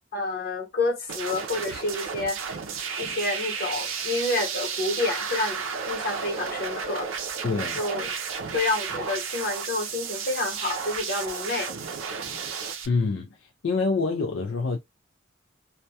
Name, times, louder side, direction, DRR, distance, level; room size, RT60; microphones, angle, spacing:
voice 1, 0.1-2.4 3.0-7.1 7.8-8.1 8.5-11.7, left 2 dB, 45° left, 0.9 m, -29 dB
sound 1, 1.1-12.9, right 6 dB, 75° right, 0.5 m, -33 dB
voice 2, 7.4-7.8 12.9-14.8, left 4 dB, 65° left, 0.4 m, -26 dB
2.2 x 2.1 x 2.7 m
head